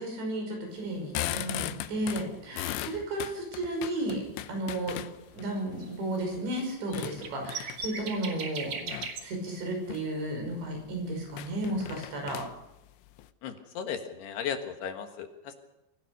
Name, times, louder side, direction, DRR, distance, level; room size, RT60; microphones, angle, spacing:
voice 1, 0.0-4.2 4.5-5.0 5.3-8.7 9.2-12.4, right 1 dB, 80° right, 2 dB, 8.0 m, -33 dB
sound 1, 0.9-5.5 6.0-8.0 8.8-9.2 9.7-10.1 10.4-10.5 10.8-10.9 11.3-13.3, left 13 dB, 90° left, 3.2 m, -38 dB
sound 2, 5.4-5.5 5.8-5.9 6.2-6.3 6.6-6.7 6.9-9.2, right 4 dB, 45° right, 2.4 m, -38 dB
voice 2, 13.4-15.6, left 7 dB, 70° left, 6 dB, 3.4 m, -36 dB
24.5 x 16.5 x 6.7 m, 0.92 s
omnidirectional pair, 5.1 m